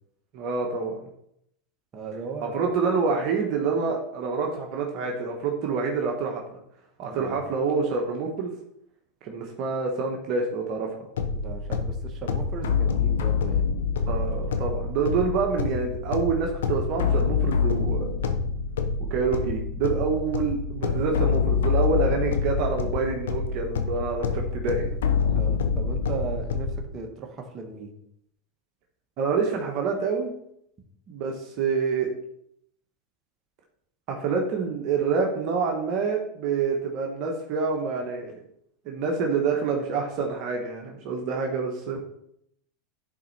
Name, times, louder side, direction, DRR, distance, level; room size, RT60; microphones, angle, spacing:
voice 1, 0.3-1.0 2.4-6.4 7.0-8.5 9.2-11.0 14.1-18.1 19.1-25.0 29.2-30.3 31.1-32.1 34.1-38.4 38.8-42.0, right 5 dB, 50° right, 1 dB, 1.5 m, -27 dB
voice 2, 1.9-2.6 7.1-7.4 11.3-13.7 20.8-21.2 22.3-22.4 25.2-27.9, right 4 dB, 35° right, 2 dB, 1.7 m, -37 dB
sound 1, 11.2-26.8, left 5 dB, 85° left, 0.9 m, -26 dB
11.0 x 4.5 x 4.3 m, 0.73 s
hypercardioid pair, 100°, 0 cm